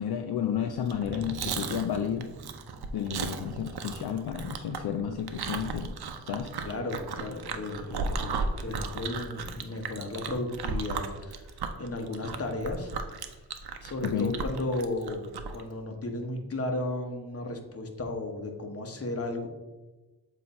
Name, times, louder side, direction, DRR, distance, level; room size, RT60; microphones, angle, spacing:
voice 1, 0.0-2.3 2.9-6.5 14.0-14.3, left 8 dB, 65° left, 6 dB, 0.5 m, -31 dB
Chewing mastication, 0.8-15.6, right 5 dB, 65° right, 0.7 m, -36 dB
sound 1, 1.0-8.2 8.4-8.5 8.8-8.9, right 1 dB, ahead, 0.6 m, -49 dB
voice 2, 6.6-12.9 13.2-13.4 13.8-19.5, left 2 dB, 35° left, 3 dB, 1.1 m, -34 dB
7.5 x 2.8 x 5.4 m, 1.2 s
cardioid pair, 100°, 42 cm